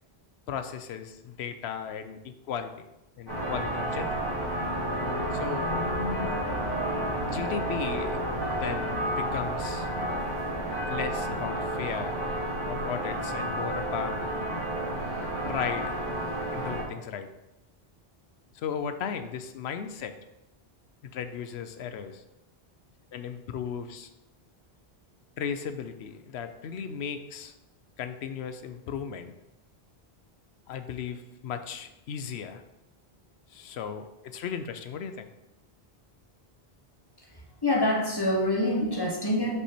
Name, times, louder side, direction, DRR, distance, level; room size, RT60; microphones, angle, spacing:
voice 1, 0.5-2.7 3.2-4.2 5.3-5.7 7.2-8.3 8.5-9.9 10.9-12.2 12.7-14.2 15.4-16.0 16.5-17.3 18.5-20.1 21.0-22.2 23.1-24.1 25.4-27.5 28.0-29.3 30.7-32.6 33.5-35.3, left 7 dB, 85° left, 9 dB, 0.9 m, -36 dB
sound 1, 3.3-16.8, right 1 dB, 20° right, 2.3 m, -31 dB
voice 2, 37.2-39.6, left 1 dB, 25° left, -1 dB, 1.1 m, -26 dB
5.5 x 4.8 x 4.3 m, 0.91 s
omnidirectional pair, 1.1 m